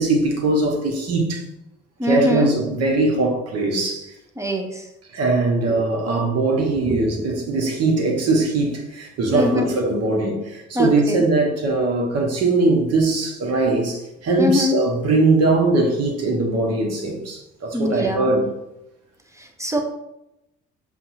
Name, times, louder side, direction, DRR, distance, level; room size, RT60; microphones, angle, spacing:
voice 1, 0.0-1.4 2.0-4.1 5.1-18.4, right 2 dB, 50° right, 1.1 m, -21 dB
voice 2, 2.0-2.5 4.4-4.9 5.7-5.8 6.6-7.3 9.3-9.7 10.7-11.2 14.4-14.8 17.7-18.3 19.3-19.8, left 1 dB, 10° right, 0.6 m, -24 dB
7.0 x 2.4 x 2.6 m
figure-of-eight pair, 45°, 33 cm